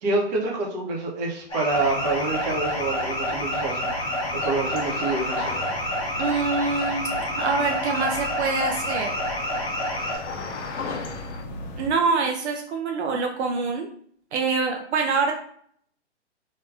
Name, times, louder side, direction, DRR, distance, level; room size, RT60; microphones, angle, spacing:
voice 1, 0.0-3.9 4.3-5.6, right 3 dB, 35° right, -1 dB, 0.8 m, -27 dB
sound 1, 1.5-10.2, equal, 15° left, 1.0 m, -28 dB
sound 2, 1.7-11.9, left 2 dB, 40° left, 0.6 m, -39 dB
sound 3, 3.9-11.4, left 4 dB, 85° left, 0.7 m, -39 dB
voice 2, 6.2-9.1 11.8-13.9 14.3-15.3, right 4 dB, 70° right, 2 dB, 0.5 m, -25 dB
3.4 x 2.2 x 2.4 m, 0.62 s
hypercardioid pair, 140°, 35 cm